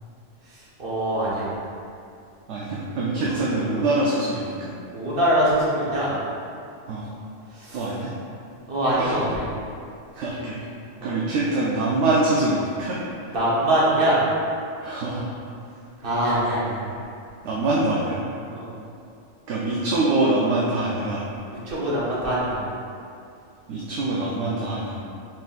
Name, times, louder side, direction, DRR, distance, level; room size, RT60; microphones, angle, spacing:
voice 1, 0.5-1.5 4.9-6.2 7.5-7.9 8.7-9.5 11.0-11.2 13.3-14.2 16.0-17.0 18.5-18.7 21.5-22.6, right 1 dB, 50° right, -8 dB, 1.2 m, -23 dB
voice 2, 2.5-4.7 6.9-7.1 7.7-8.1 9.0-9.1 10.1-10.6 11.0-13.3 14.8-15.3 17.4-18.3 19.5-21.2 23.7-25.0, right 2 dB, 70° right, -5 dB, 0.8 m, -24 dB
4.4 x 3.7 x 2.4 m, 2.5 s
omnidirectional pair, 1.3 m